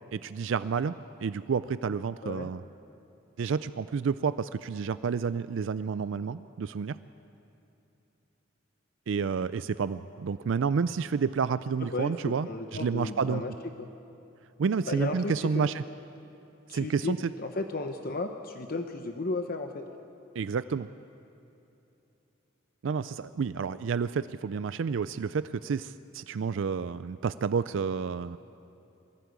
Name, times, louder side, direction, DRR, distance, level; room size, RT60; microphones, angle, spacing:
voice 1, 0.1-0.9 1.2-2.6 3.4-7.0 9.1-13.4 14.6-15.8 16.7-17.2 20.4-20.9 22.8-28.4, right 5 dB, 65° right, 14 dB, 0.4 m, -30 dB
voice 2, 11.8-13.5 13.8-13.9 14.8-15.7 16.7-19.9, left 2 dB, 45° left, 5 dB, 0.8 m, -34 dB
22.0 x 15.0 x 8.3 m, 2.8 s
head